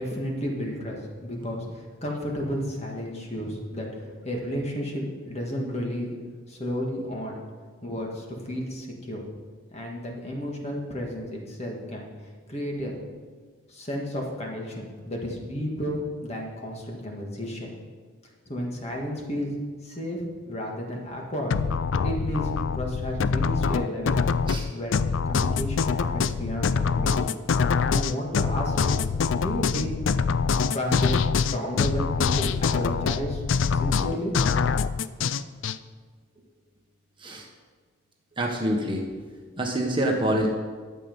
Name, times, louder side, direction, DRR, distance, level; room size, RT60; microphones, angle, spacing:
voice 1, 0.0-6.1 6.5-7.4 7.8-9.2 9.7-12.1 12.5-13.0 13.7-17.7 18.5-19.5 19.8-21.6 22.0-24.2 24.7-25.0 25.3-27.2 27.9-29.9 30.7-33.4 33.7-34.3, equal, 30° left, -1 dB, 1.8 m, -32 dB
sound 1, 21.5-35.8, left 5 dB, 70° left, 0.4 m, -24 dB
voice 2, 38.4-39.1 39.6-40.5, right 1 dB, 25° right, 0 dB, 1.1 m, -26 dB
12.5 x 7.6 x 5.3 m, 1.5 s
head